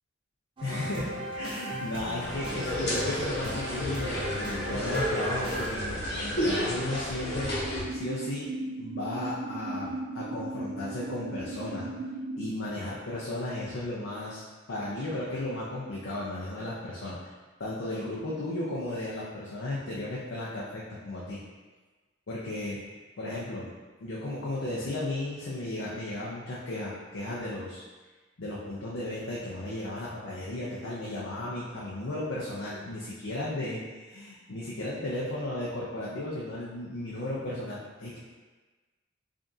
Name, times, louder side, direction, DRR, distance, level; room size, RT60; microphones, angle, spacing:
voice 1, 0.6-7.5 7.9-8.5 8.8-11.9 12.3-14.4 14.7-17.2 17.6-21.4 22.3-22.8 23.2-23.7 24.0-27.8 28.4-33.8 34.1-38.2, left 1 dB, 80° left, -6 dB, 0.6 m, -35 dB
sound 1, 0.6-5.7, equal, 25° right, 0.7 m, -37 dB
sound 2, 2.2-7.8, equal, 60° left, 1.0 m, -31 dB
sound 3, 7.5-12.5, right 2 dB, 80° right, 0.4 m, -37 dB
5.0 x 2.5 x 2.7 m, 1.3 s
head